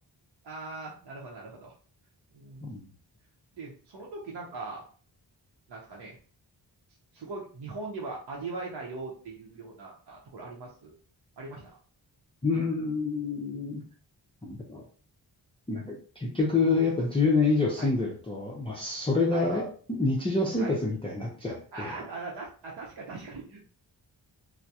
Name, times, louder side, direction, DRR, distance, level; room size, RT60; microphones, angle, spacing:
voice 1, 0.4-1.7 2.3-2.7 3.5-4.9 5.7-6.1 7.1-11.0 11.4-11.6 17.8-17.9 19.3-19.6 20.6-20.8 21.7-23.6, right 3 dB, 65° right, -3 dB, 0.7 m, -40 dB
voice 2, 12.4-13.8 14.4-14.8 15.7-22.0, left 3 dB, 10° left, -2 dB, 0.5 m, -27 dB
2.2 x 2.0 x 2.7 m, 0.42 s
cardioid pair, 45°, 46 cm